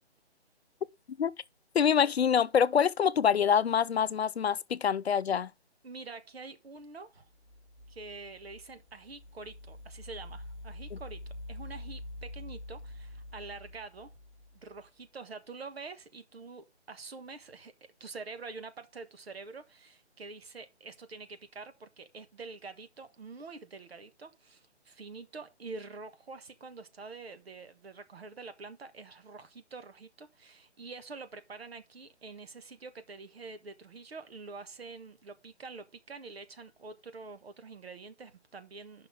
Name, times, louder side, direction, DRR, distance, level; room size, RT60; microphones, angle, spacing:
voice 1, 1.7-5.5 10.9-11.0, left 7 dB, 65° left, 0.6 m, -25 dB
voice 2, 5.8-7.3 7.9-11.2 11.5-14.1 14.5-39.1, right 4 dB, 60° right, 1.5 m, -46 dB
sound 1, 7.3-14.8, left 1 dB, 10° right, 2.7 m, -46 dB
9.4 x 5.7 x 3.8 m
figure-of-eight pair, 160°, 34 cm